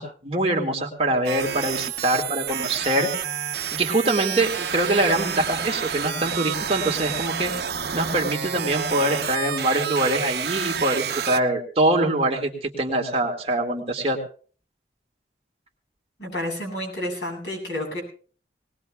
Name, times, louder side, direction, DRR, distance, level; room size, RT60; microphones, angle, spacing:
voice 1, 0.0-3.1 3.7-7.5 7.9-14.2, right 1 dB, 35° right, 1 dB, 2.0 m, -24 dB
sound 1, 1.2-11.4, right 7 dB, 65° right, 0.9 m, -29 dB
voice 2, 16.2-18.0, left 1 dB, 80° left, 0 dB, 7.8 m, -30 dB
20.0 x 20.0 x 2.4 m, 0.41 s
head